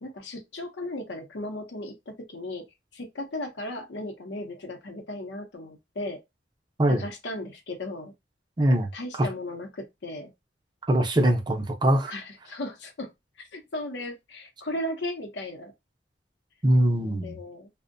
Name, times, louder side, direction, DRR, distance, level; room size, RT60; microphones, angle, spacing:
voice 1, 0.0-2.6 2.9-6.2 6.9-8.1 8.9-10.3 12.1-13.1 13.4-15.7 17.0-17.7, left 1 dB, 75° left, 0.7 m, -36 dB
voice 2, 8.6-8.9 9.2-9.3 10.9-12.1 16.6-17.4, right 1 dB, 25° right, 0.5 m, -22 dB
2.6 x 2.1 x 2.5 m
head